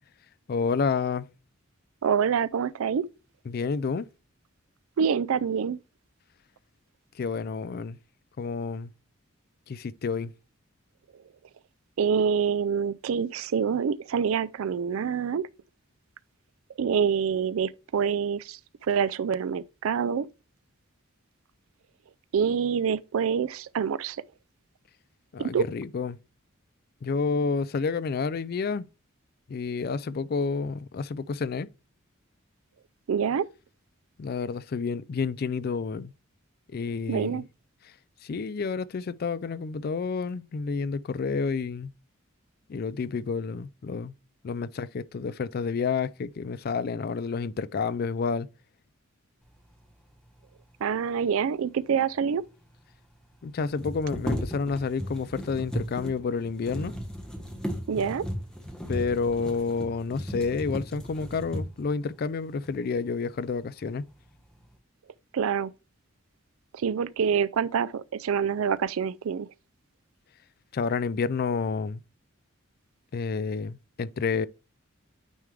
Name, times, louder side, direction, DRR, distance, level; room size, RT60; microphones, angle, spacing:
voice 1, 0.5-1.3 3.5-4.1 7.2-8.0 8.4-8.9 9.7-10.3 25.3-26.2 27.0-28.9 29.5-31.7 34.2-36.1 36.7-37.4 37.8-37.9 38.2-41.9 42.7-44.1 44.4-48.5 53.4-56.9 58.9-64.1 70.7-72.0 73.1-74.5, left 5 dB, 45° left, 0.4 m, -29 dB
voice 2, 2.0-3.0 5.0-5.8 12.0-15.5 16.8-18.6 18.9-20.3 22.3-24.2 25.4-25.7 33.1-33.5 37.1-37.4 50.8-52.4 57.9-58.2 65.3-65.7 66.7-69.5, right 7 dB, 80° right, 0.4 m, -26 dB
sound 1, 52.1-52.2 52.4-52.5 53.6-61.9 62.6-62.7 63.2-63.8 64.2-64.7, equal, 5° left, 1.1 m, -36 dB
9.2 x 3.5 x 3.2 m
head